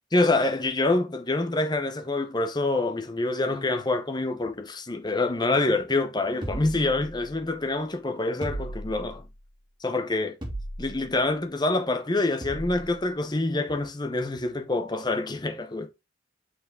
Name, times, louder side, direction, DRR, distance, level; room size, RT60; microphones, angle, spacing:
voice 1, 0.1-9.3 9.8-10.4 10.8-15.9, left 2 dB, 25° left, 0.9 m, -26 dB
sound 1, 6.4-7.5 8.4-9.3 10.4-11.1 12.4-12.9, right 1 dB, 25° right, 2.8 m, -36 dB
6.0 x 4.9 x 3.7 m
head